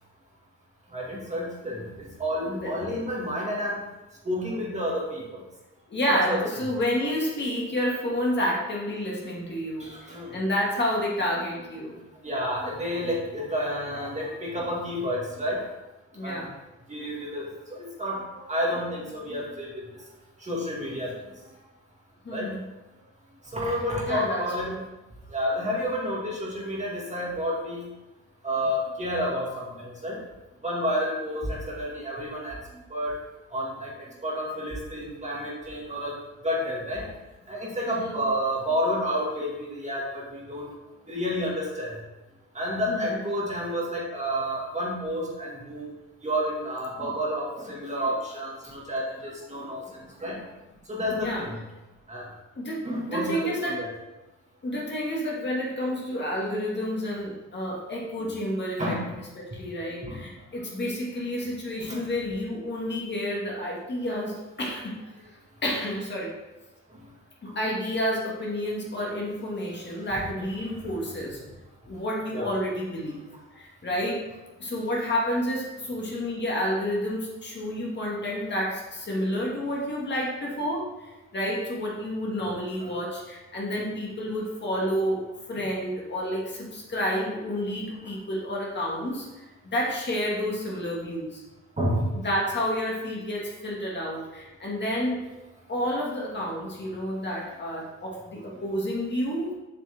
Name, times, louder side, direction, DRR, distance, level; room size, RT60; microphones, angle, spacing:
voice 1, 0.9-3.8 4.2-5.4 6.1-6.4 9.8-10.4 12.2-15.6 16.2-16.4 16.9-19.7 20.4-21.1 22.3-22.5 23.5-24.7 25.3-27.8 28.4-30.2 30.6-32.6 32.9-33.1 33.5-36.2 36.4-37.1 37.5-40.7 41.1-41.9 42.5-45.9 46.2-50.4 50.9-51.6 52.1-52.3 52.8-53.9 58.2-58.3 58.8-59.1 60.0-60.2 61.8-62.0 67.5-67.6 70.1-70.2 72.3-72.5 82.8-82.9 85.5-85.6 91.8-92.1, equal, 25° right, -4 dB, 2.2 m, -30 dB
voice 2, 5.9-9.9 10.3-12.0 16.1-16.5 22.3-22.6 24.1-24.8 37.9-38.2 42.9-43.1 51.1-51.4 52.6-53.9 54.6-59.0 59.4-65.0 65.6-66.4 67.4-71.4 71.9-73.3 73.5-74.2 74.6-80.9 81.3-85.2 85.5-89.3 89.7-91.4 92.2-95.2 95.7-99.5, equal, 35° left, -3 dB, 2.1 m, -29 dB
7.1 x 6.0 x 3.6 m, 1.1 s
cardioid pair, 90°, 30 cm